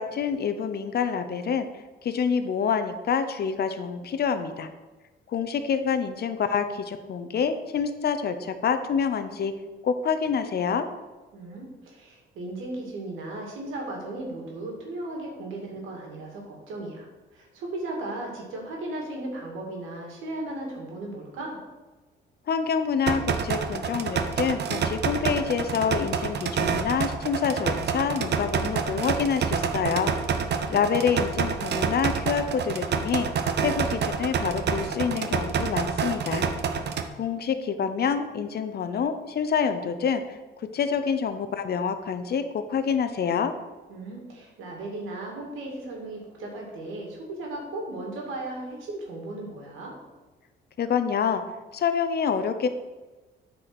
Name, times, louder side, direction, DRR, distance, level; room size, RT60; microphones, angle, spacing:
voice 1, 0.0-1.7 2.0-4.7 5.3-9.6 9.8-10.9 22.5-30.1 30.7-33.3 33.6-36.5 37.1-43.5 50.8-51.4 51.7-52.7, left 6 dB, 55° left, 9 dB, 0.9 m, -27 dB
voice 2, 11.3-17.1 17.3-21.6 30.5-31.0 43.9-49.9, right 2 dB, 90° right, 0 dB, 2.4 m, -36 dB
sound 1, 23.1-37.1, right 6 dB, 60° right, 0.8 m, -28 dB
8.8 x 4.9 x 6.2 m, 1.2 s
cardioid pair, 90°, 20 cm